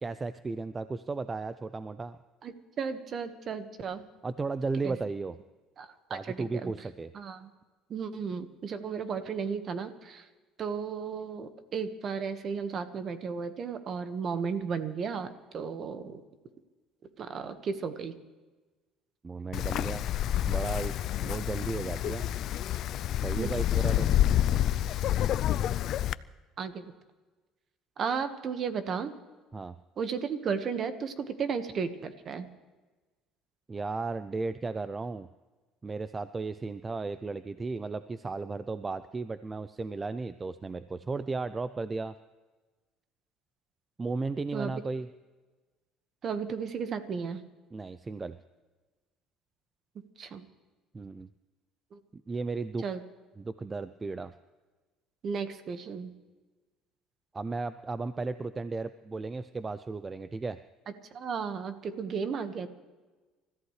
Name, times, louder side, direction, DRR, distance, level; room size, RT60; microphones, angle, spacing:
voice 1, 0.0-2.2 4.2-5.4 6.1-7.1 19.2-20.1 20.5-20.9 21.2-22.4 23.2-24.1 29.5-29.8 33.7-35.3 35.8-42.1 44.0-45.1 47.7-48.4 50.9-51.3 52.3-52.8 53.4-54.3 57.3-60.6, right 3 dB, 20° right, 13 dB, 0.4 m, -35 dB
voice 2, 2.4-4.0 4.8-4.9 5.8-6.7 7.1-7.5 7.9-10.2 10.6-15.3 15.5-16.2 17.2-18.1 23.3-23.5 26.6-26.9 28.0-29.1 30.0-32.5 44.5-44.7 46.2-47.4 50.2-50.4 51.9-52.0 52.8-53.0 55.2-56.1 61.1-62.7, right 6 dB, 40° right, 9 dB, 1.4 m, -34 dB
Wind, 19.5-26.1, left 12 dB, 55° left, 0.4 m, -28 dB
29.0 x 14.5 x 3.3 m, 1.3 s
cardioid pair, 120°, 0 cm